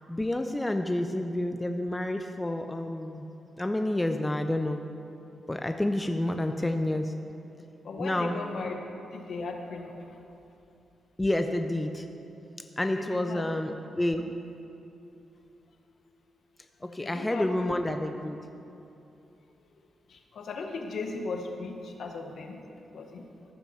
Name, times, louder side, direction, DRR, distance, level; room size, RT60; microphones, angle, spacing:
voice 1, 0.1-3.3 3.6-4.8 5.5-7.1 8.0-8.4 11.2-12.1 12.8-14.3 16.8-18.4, left 1 dB, 10° left, 6 dB, 0.5 m, -29 dB
voice 2, 7.8-8.8 9.1-10.2 12.9-13.5 16.8-17.5 20.1-22.6 22.9-23.3, left 3 dB, 65° left, 3 dB, 1.2 m, -37 dB
14.0 x 5.8 x 5.7 m, 2.8 s
cardioid pair, 105°, 0 cm